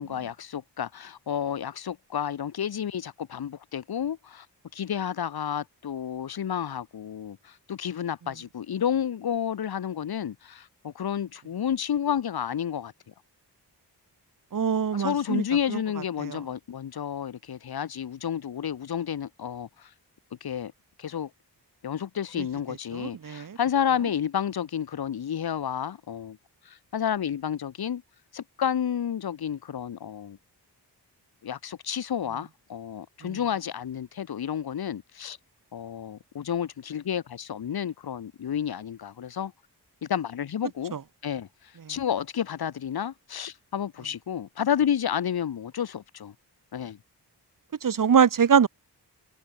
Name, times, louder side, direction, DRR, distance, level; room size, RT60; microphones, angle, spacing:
voice 1, 0.0-4.5 4.7-12.9 14.9-19.9 20.4-20.7 21.0-21.3 21.8-26.4 26.6-28.0 28.3-30.4 31.4-35.4 35.7-39.5 40.0-40.9 41.2-41.5 41.9-46.3 46.7-47.0, left 9 dB, 60° left, 1.0 m, -30 dB
voice 2, 14.5-15.4 15.7-15.8 16.2-16.4 22.4-22.5 22.9-23.6 33.2-33.4 40.9-41.0 47.8-48.7, right 7 dB, 50° right, 1.2 m, -23 dB
wide cardioid pair, 110°, 41 cm